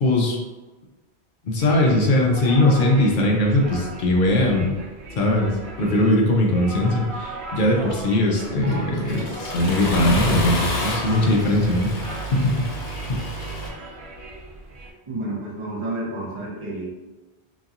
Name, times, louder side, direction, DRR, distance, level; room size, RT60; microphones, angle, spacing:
voice 1, 0.0-0.4 1.4-4.7 5.2-11.9 12.3-12.7 13.1-13.2, left 1 dB, 55° left, -1 dB, 0.7 m, -20 dB
sound 1, 1.6-14.9, right 2 dB, 75° right, 0.9 m, -37 dB
Accelerating revving vroom, 8.4-13.7, left 1 dB, 85° left, 1.0 m, -29 dB
voice 2, 15.1-16.9, right 2 dB, 35° right, -4 dB, 0.7 m, -30 dB
3.0 x 2.7 x 2.4 m, 1.2 s
omnidirectional pair, 1.1 m